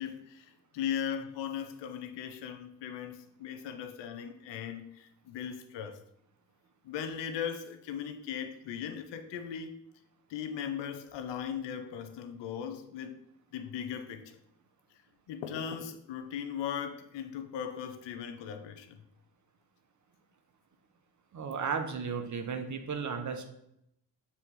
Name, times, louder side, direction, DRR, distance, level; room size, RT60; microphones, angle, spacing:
voice 1, 0.0-6.0 6.8-9.7 10.3-13.2 13.5-14.2 15.3-19.0, left 8 dB, 70° left, 8 dB, 0.8 m, -38 dB
voice 2, 21.3-23.5, right 6 dB, 40° right, 6 dB, 1.1 m, -34 dB
7.0 x 3.4 x 4.6 m, 0.79 s
hypercardioid pair, 50°, 46 cm